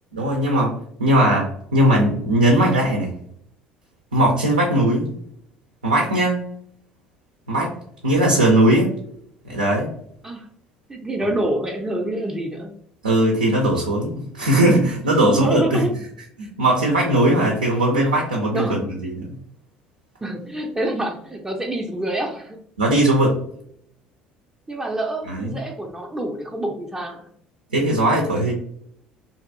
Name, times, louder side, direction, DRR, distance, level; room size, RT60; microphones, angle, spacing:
voice 1, 0.1-0.7 1.0-3.1 4.1-5.1 5.8-6.4 7.5-7.7 8.0-8.9 9.5-9.9 13.0-15.9 16.4-19.2 22.8-23.4 25.3-25.6 27.7-28.5, right 1 dB, 85° right, -1 dB, 0.5 m, -19 dB
voice 2, 10.9-12.7 15.1-15.9 18.5-18.9 20.2-22.6 24.7-27.3, right 1 dB, 15° right, 0 dB, 0.5 m, -27 dB
2.6 x 2.3 x 2.6 m, 0.66 s
figure-of-eight pair, 55°, 4 cm